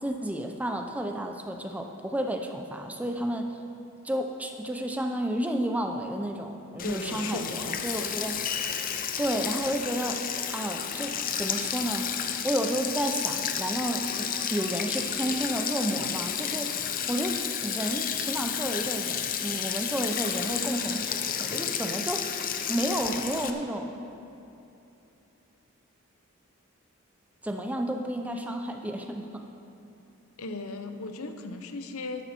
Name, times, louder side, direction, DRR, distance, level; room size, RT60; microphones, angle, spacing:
voice 1, 0.0-3.6 4.0-8.4 9.2-10.2 10.5-12.1 12.4-22.3 22.7-24.0 27.4-29.4, right 1 dB, 5° right, 4 dB, 0.6 m, -31 dB
voice 2, 6.8-7.9 30.4-32.3, left 2 dB, 85° left, 7 dB, 0.9 m, -37 dB
Sink (filling or washing), 6.8-23.5, left 8 dB, 40° left, 0.6 m, -31 dB
12.5 x 11.5 x 4.4 m, 2.9 s
head